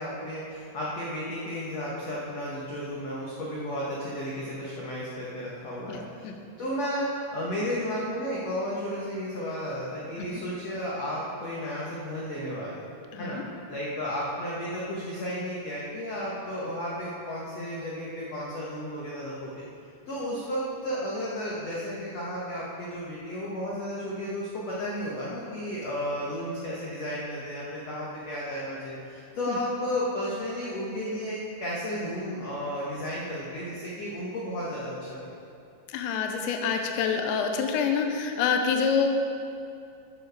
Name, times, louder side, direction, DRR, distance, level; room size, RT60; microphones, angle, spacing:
voice 1, 0.0-6.3 6.6-12.9 13.2-13.4 13.7-19.6 20.1-35.3, equal, 65° left, -6 dB, 1.6 m, -33 dB
voice 2, 13.1-13.4 29.5-29.6 35.9-39.1, left 6 dB, 85° left, 4 dB, 3.1 m, -26 dB
13.5 x 7.9 x 4.8 m, 2.6 s
omnidirectional pair, 5.2 m